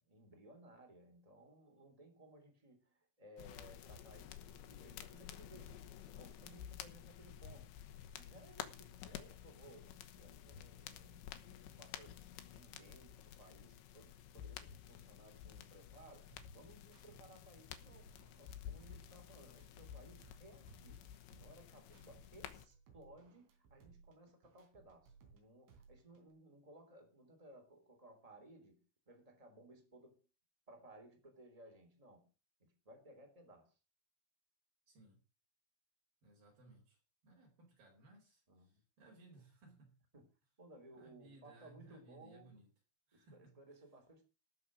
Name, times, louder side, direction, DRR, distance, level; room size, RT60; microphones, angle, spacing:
voice 1, 0.0-5.8 6.1-12.2 12.5-30.2 30.7-32.3 32.6-33.8 38.5-38.8 40.1-40.3 40.6-42.6 43.1-44.2, right 1 dB, 10° right, 2.5 m, -60 dB
sound 1, 3.4-22.7, left 10 dB, 75° left, 3.3 m, -52 dB
sound 2, 16.3-17.3 17.6-20.4 20.7-22.3 22.6-25.4 25.7-26.3, right 5 dB, 80° right, 5.9 m, -64 dB
voice 2, 34.9-35.2 36.2-40.0 41.0-42.7 43.1-43.6, right 2 dB, 50° right, 6.1 m, -62 dB
17.5 x 6.8 x 6.3 m
omnidirectional pair, 5.6 m